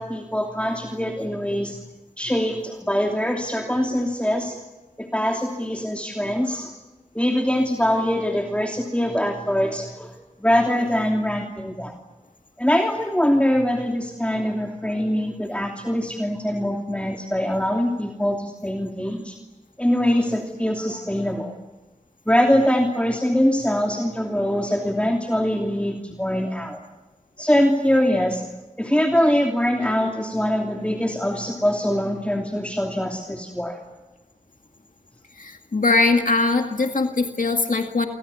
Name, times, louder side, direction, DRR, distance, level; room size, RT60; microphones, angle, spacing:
voice 1, 0.0-1.8 2.2-4.6 5.0-6.7 7.1-10.1 10.4-11.9 12.6-19.4 19.8-21.6 22.3-26.8 27.4-28.4 28.8-33.8, equal, 10° left, 1 dB, 2.9 m, -23 dB
voice 2, 35.4-38.1, left 3 dB, 90° left, 4 dB, 2.0 m, -21 dB
29.5 x 25.5 x 7.1 m, 1.1 s
wide cardioid pair, 40°, 13 cm